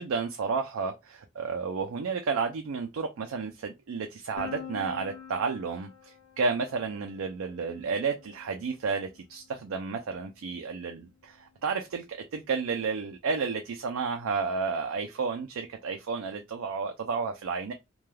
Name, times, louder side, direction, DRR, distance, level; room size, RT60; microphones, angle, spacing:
voice 1, 0.0-17.7, right 5 dB, 85° right, 0.4 m, -32 dB
Piano, 4.4-10.1, left 7 dB, 80° left, 0.5 m, -46 dB
2.2 x 2.2 x 3.1 m
head